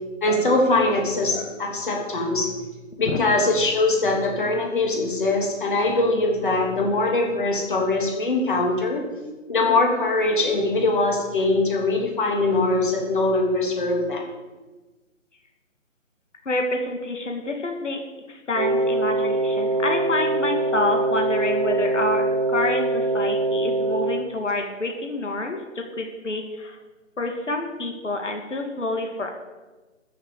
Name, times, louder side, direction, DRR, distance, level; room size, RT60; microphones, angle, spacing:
voice 1, 0.2-2.5 3.0-9.2 9.5-14.3, left 2 dB, 40° left, 1 dB, 3.3 m, -22 dB
voice 2, 16.5-18.0 18.3-22.2 22.5-26.8 27.2-29.3, left 2 dB, 65° left, 3 dB, 2.2 m, -28 dB
Wind instrument woodwind instrument, 18.5-24.3, right 2 dB, 30° right, 0.7 m, -23 dB
13.5 x 7.0 x 8.0 m, 1.2 s
figure-of-eight pair, 155°, 39 cm